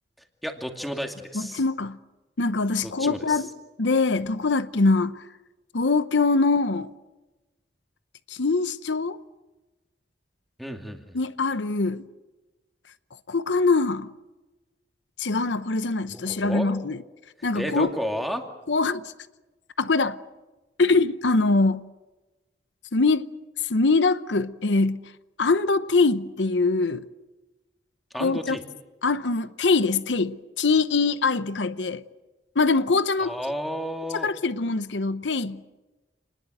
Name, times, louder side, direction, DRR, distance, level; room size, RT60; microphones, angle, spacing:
voice 1, 0.4-1.6 2.8-3.4 10.6-11.2 16.1-16.7 17.5-18.4 28.1-28.6 33.2-34.3, equal, ahead, 2.3 m, -32 dB
voice 2, 1.3-2.0 2.4-3.5 3.8-5.2 5.7-6.9 8.3-9.2 11.1-12.0 13.3-14.1 15.2-17.0 17.4-17.9 18.7-19.0 19.8-20.2 20.8-21.8 22.9-23.2 23.6-25.0 25.4-27.0 28.2-28.6 29.0-32.0 32.6-33.3 34.2-35.7, left 3 dB, 85° left, 0.9 m, -23 dB
28.5 x 20.5 x 8.0 m
head